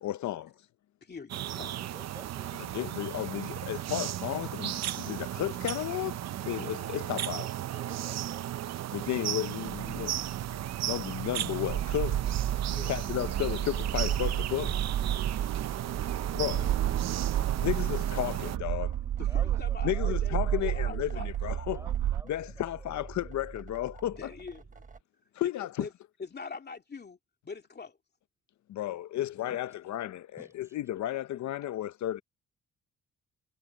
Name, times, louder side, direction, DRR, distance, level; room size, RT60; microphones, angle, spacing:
voice 1, 0.0-0.5 2.7-7.4 8.9-10.1 10.9-12.2 12.9-14.9 16.3-16.8 17.6-19.0 19.8-21.9 22.3-24.3 25.3-25.9 28.7-32.2, left 13 dB, 70° left, 0.7 m, -33 dB
voice 2, 1.0-1.8 12.7-13.0 15.1-15.7 19.2-21.3 24.2-24.6 25.4-25.5 25.8-25.9 26.2-27.2 27.4-28.0, left 4 dB, 35° left, 2.7 m, -43 dB
sound 1, 1.3-18.6, right 12 dB, 60° right, 0.7 m, -35 dB
voice 3, 1.7-2.6 7.4-8.5 19.2-21.2 21.6-22.7 23.0-23.3 29.2-29.6 30.4-30.8, right 1 dB, 10° right, 4.9 m, -52 dB
sound 2, 9.7-25.0, right 4 dB, 25° right, 1.3 m, -47 dB
sound 3, 11.7-22.2, right 11 dB, 75° right, 1.6 m, -31 dB
cardioid pair, 90°, 30 cm